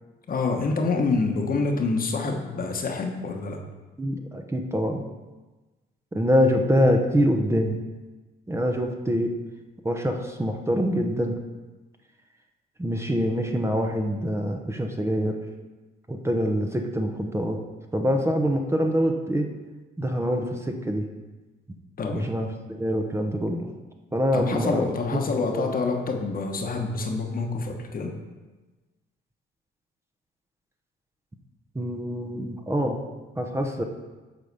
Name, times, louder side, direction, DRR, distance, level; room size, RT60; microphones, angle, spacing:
voice 1, 0.3-3.6 22.0-22.3 24.3-28.2, left 3 dB, 45° left, 3 dB, 1.1 m, -27 dB
voice 2, 4.0-5.0 6.1-7.8 8.5-9.3 9.8-11.4 12.8-15.4 16.1-17.6 17.9-19.5 20.0-21.1 21.7-21.8 22.1-23.7 24.1-24.9 25.1-25.7 31.7-33.0 33.4-33.8, equal, 15° right, 3 dB, 0.8 m, -25 dB
8.1 x 4.1 x 6.7 m, 1.2 s
cardioid pair, 90°, 20 cm